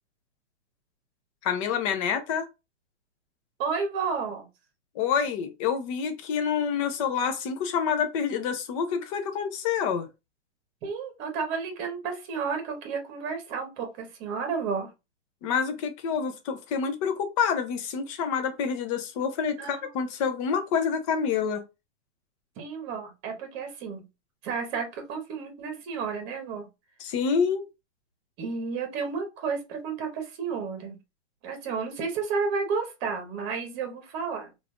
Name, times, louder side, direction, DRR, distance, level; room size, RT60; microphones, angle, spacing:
voice 1, 1.4-2.5 5.0-10.1 15.4-21.6 27.0-27.6, left 6 dB, 30° left, 0.5 m, -27 dB
voice 2, 3.6-4.5 10.8-14.9 19.6-19.8 22.6-24.0 24.4-26.7 28.4-31.0 31.4-34.5, right 5 dB, 35° right, 1.0 m, -32 dB
3.2 x 2.5 x 2.3 m
hypercardioid pair, 125°, 35 cm